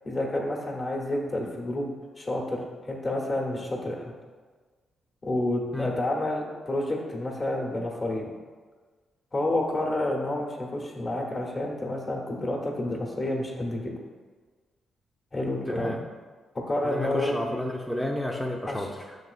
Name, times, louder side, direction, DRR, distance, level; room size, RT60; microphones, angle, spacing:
voice 1, 0.0-1.9 2.2-4.2 5.2-8.3 9.3-13.9 15.3-15.9 16.5-17.3 18.7-18.9, left 1 dB, 40° left, -1 dB, 0.9 m, -29 dB
voice 2, 15.7-16.0 16.8-19.2, left 1 dB, 5° left, -1 dB, 0.5 m, -31 dB
6.2 x 3.0 x 2.4 m, 1.4 s
hypercardioid pair, 40°, 0 cm